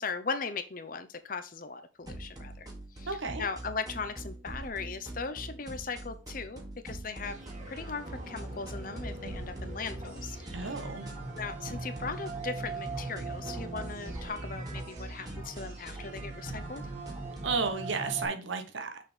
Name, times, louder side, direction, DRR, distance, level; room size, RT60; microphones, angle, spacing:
voice 1, 0.0-2.7 2.9-7.4 7.7-10.7 11.4-16.9, left 4 dB, 45° left, 0.8 m, -38 dB
sound 1, 2.0-17.7, right 1 dB, 20° right, 1.6 m, -43 dB
voice 2, 3.1-3.5 10.5-11.1 17.4-19.0, right 4 dB, 80° right, 1.1 m, -33 dB
sound 2, 7.2-18.3, right 3 dB, 35° right, 1.8 m, -41 dB
6.4 x 4.2 x 5.1 m
head